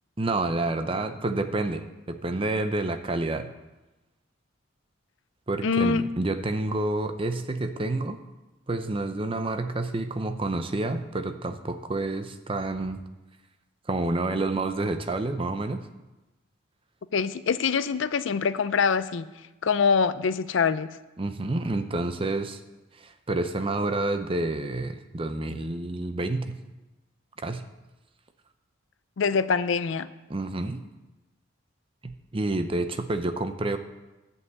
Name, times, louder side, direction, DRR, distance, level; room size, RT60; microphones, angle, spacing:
voice 1, 0.2-3.5 5.5-8.2 8.7-13.0 13.9-15.8 21.2-22.6 23.0-26.6 27.4-27.6 30.3-30.9 32.0-33.8, right 2 dB, 25° right, 8 dB, 0.6 m, -29 dB
voice 2, 5.6-6.0 17.1-19.3 19.6-20.9 29.2-30.1, left 5 dB, 70° left, 14 dB, 0.5 m, -24 dB
11.0 x 5.5 x 8.1 m, 1.1 s
head